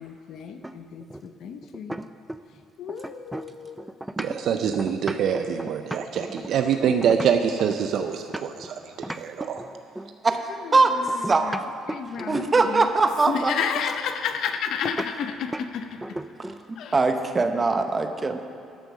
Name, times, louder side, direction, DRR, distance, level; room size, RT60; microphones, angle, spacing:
voice 1, 0.0-2.0 2.8-3.8 10.6-12.9 13.3-16.2 16.8-17.0, left 7 dB, 60° left, 8 dB, 0.6 m, -32 dB
sound 1, 0.6-2.6 2.9-8.7 9.0-10.2 11.1-12.9 14.8-15.1 15.5-15.7 16.0-16.7, right 1 dB, 5° right, 0.3 m, -36 dB
voice 2, 4.2-8.8 9.1-9.6, right 7 dB, 60° right, 6 dB, 0.5 m, -25 dB
voice 3, 12.3-13.5 16.9-18.4, right 3 dB, 20° right, 7 dB, 0.8 m, -21 dB
12.5 x 7.6 x 6.2 m, 2.4 s
cardioid pair, 140°, 0 cm